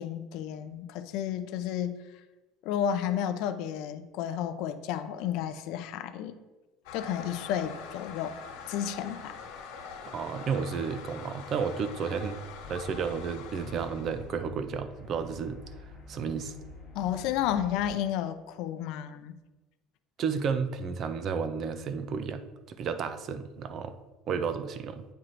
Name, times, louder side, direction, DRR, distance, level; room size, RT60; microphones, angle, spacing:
voice 1, 0.0-2.0 2.6-6.4 6.9-8.4 8.7-9.4 16.9-19.3, left 10 dB, 50° left, 10 dB, 0.4 m, -32 dB
Toilet flush, 6.8-14.3, left 6 dB, 80° left, 1.4 m, -44 dB
voice 2, 10.1-12.4 12.7-15.6 16.1-16.5 20.2-23.9 24.3-25.0, right 6 dB, 30° right, 10 dB, 0.3 m, -32 dB
sound 1, 12.6-17.9, left 2 dB, 5° left, 1.3 m, -48 dB
9.5 x 4.4 x 2.5 m, 1.2 s
cardioid pair, 175°, 0 cm